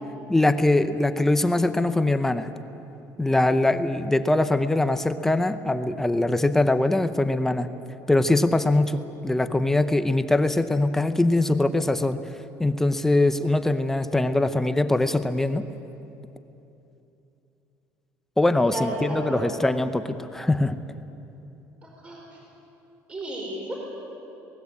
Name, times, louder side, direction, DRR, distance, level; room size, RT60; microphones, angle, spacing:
voice 1, 0.3-2.5 3.2-7.7 8.1-12.2 12.6-15.7 18.4-20.7, left 2 dB, 5° left, 10 dB, 0.7 m, -22 dB
voice 2, 18.6-19.5 21.8-22.4 23.1-23.8, right 1 dB, 20° right, -2 dB, 4.9 m, -33 dB
27.5 x 19.5 x 8.4 m, 2.9 s
cardioid pair, 175°, 6 cm